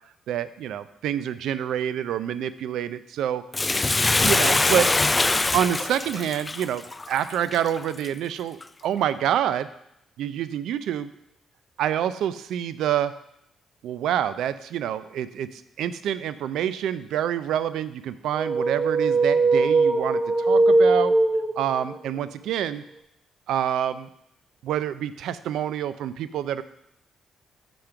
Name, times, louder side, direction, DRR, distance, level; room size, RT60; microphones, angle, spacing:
voice 1, 0.3-3.4 4.0-4.9 5.5-9.7 10.2-11.1 11.8-13.1 13.8-21.1 21.6-22.8 23.5-24.1 24.6-26.6, right 10 dB, 80° right, 14 dB, 0.4 m, -27 dB
Bathtub (filling or washing), 3.5-8.1 8.6-8.7, left 3 dB, 20° left, 0.3 m, -23 dB
sound 1, 18.3-22.0, right 3 dB, 25° right, 0.9 m, -20 dB
6.0 x 5.1 x 5.8 m, 0.77 s
cardioid pair, 90°, 0 cm